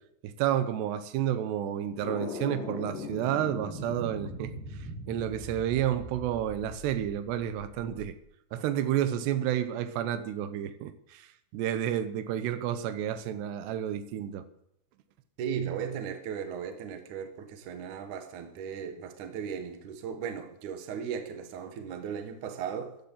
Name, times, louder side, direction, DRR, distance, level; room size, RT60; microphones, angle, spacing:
voice 1, 0.2-4.5 5.1-8.2 8.5-11.3 11.5-14.5, right 11 dB, 90° right, 3.1 m, -30 dB
sound 1, 2.0-8.1, left 2 dB, 75° left, 5.5 m, -40 dB
voice 2, 15.4-23.0, right 7 dB, 60° right, 2.6 m, -36 dB
16.0 x 10.5 x 7.3 m
omnidirectional pair, 4.7 m